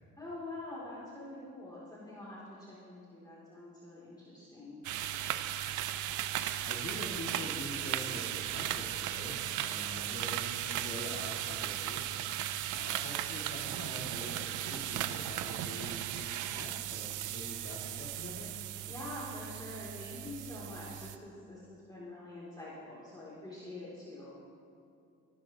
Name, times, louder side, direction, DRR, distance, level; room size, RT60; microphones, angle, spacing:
voice 1, 0.2-4.8 18.9-24.4, left 2 dB, 15° left, -9 dB, 3.0 m, -45 dB
sound 1, 4.8-21.2, right 12 dB, 80° right, 0.6 m, -37 dB
voice 2, 6.6-18.5, left 1 dB, 45° left, -2 dB, 2.5 m, -45 dB
18.0 x 11.5 x 3.0 m, 2.6 s
cardioid pair, 90°, 30 cm